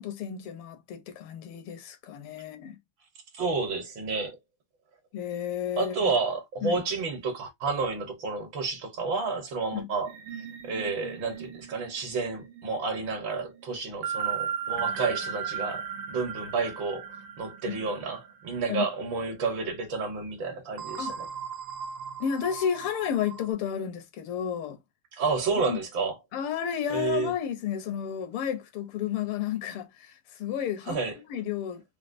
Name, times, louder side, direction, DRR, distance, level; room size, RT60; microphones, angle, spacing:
voice 1, 0.0-2.8 5.1-6.1 6.6-6.8 9.7-9.9 17.7-17.9 18.7-18.8 21.0-21.2 22.2-24.8 25.6-25.8 26.3-31.0 31.3-31.8, left 9 dB, 90° left, 1.6 m, -32 dB
voice 2, 3.3-4.4 5.8-10.1 10.6-17.1 17.4-21.3 25.1-26.2 26.9-27.3 30.9-31.2, right 4 dB, 65° right, 1.7 m, -30 dB
sound 1, 10.1-19.0 19.3-19.5 20.8-23.5, right 7 dB, 85° right, 1.6 m, -37 dB
4.5 x 2.1 x 2.5 m
omnidirectional pair, 2.3 m